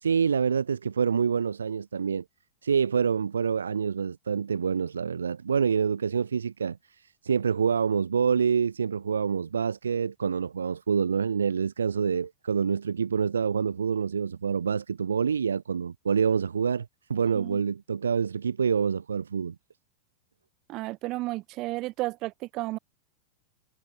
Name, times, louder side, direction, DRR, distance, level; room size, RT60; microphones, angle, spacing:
voice 1, 0.0-2.2 2.6-6.8 7.2-19.5, right 6 dB, 70° right, 1.0 m, -26 dB
voice 2, 20.7-22.8, right 20 dB, 40° right, 4.3 m, -33 dB
figure-of-eight pair, 90°, 0 cm